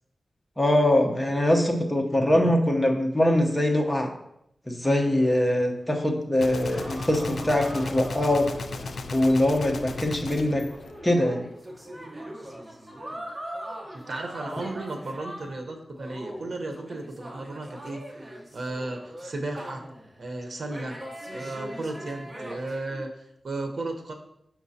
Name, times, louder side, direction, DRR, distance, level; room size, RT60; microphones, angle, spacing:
voice 1, 0.6-4.1 4.7-8.5 9.1-10.6 11.0-11.4, left 1 dB, 15° left, 2 dB, 0.9 m, -23 dB
sound 1, 4.8-9.6 9.9-10.0 10.4-15.6 16.0-20.2 20.7-23.1, right 1 dB, 25° right, 1.0 m, -41 dB
Gunshot gunfire, 6.4-11.6, left 3 dB, 80° left, 0.4 m, -36 dB
voice 2, 13.9-19.8 20.2-21.0 21.3-24.1, right 2 dB, 60° right, 3 dB, 0.9 m, -35 dB
6.2 x 5.8 x 2.8 m, 0.78 s
wide cardioid pair, 100°, 0 cm